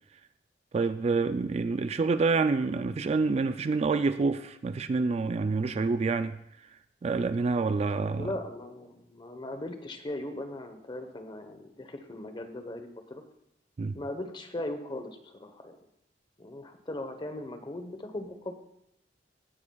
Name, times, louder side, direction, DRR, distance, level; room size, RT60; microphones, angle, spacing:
voice 1, 0.7-6.4 7.0-8.3 13.8-14.0, right 4 dB, 35° right, 0.3 m, -27 dB
voice 2, 8.2-13.2 13.9-15.8 16.4-18.6, left 1 dB, 25° left, 1.0 m, -38 dB
16.5 x 9.6 x 2.3 m
head